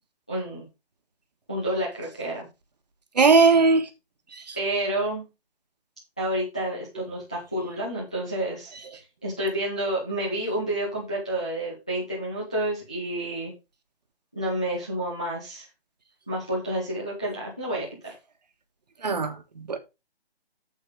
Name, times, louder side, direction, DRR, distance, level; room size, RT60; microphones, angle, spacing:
voice 1, 0.3-0.6 1.5-2.4 4.5-5.2 6.2-8.7 9.2-13.5 14.3-15.7 16.3-18.1, right 1 dB, 5° left, 0.6 m, -29 dB
voice 2, 3.1-3.9 4.3-4.6 19.0-19.8, right 4 dB, 40° right, 1.5 m, -20 dB
8.2 x 7.8 x 3.8 m
hypercardioid pair, 175°, 31 cm